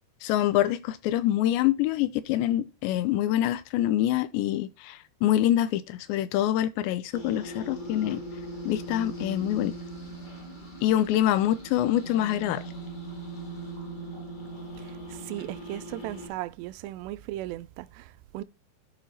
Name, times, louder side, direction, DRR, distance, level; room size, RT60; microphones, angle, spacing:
voice 1, 0.2-8.2 8.7-9.7 10.8-12.6, left 12 dB, 85° left, 2.9 m, -25 dB
sound 1, 7.1-16.3, right 2 dB, 50° left, 0.5 m, -40 dB
voice 2, 14.8-18.4, right 15 dB, 80° right, 2.7 m, -37 dB
11.5 x 4.9 x 4.2 m
omnidirectional pair, 5.2 m